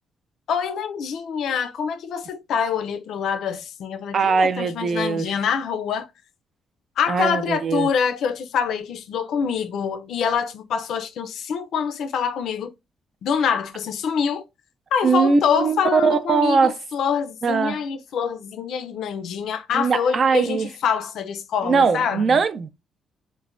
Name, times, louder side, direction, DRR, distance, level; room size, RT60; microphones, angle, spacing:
voice 1, 0.5-6.1 7.0-12.7 13.2-14.4 14.9-22.4, left 7 dB, 75° left, 0.4 m, -25 dB
voice 2, 4.1-5.4 7.1-7.9 15.0-16.8 17.4-17.8 19.7-20.7 21.6-22.7, right 5 dB, 50° right, 0.3 m, -20 dB
3.1 x 2.1 x 2.4 m
cardioid pair, 90°, 0 cm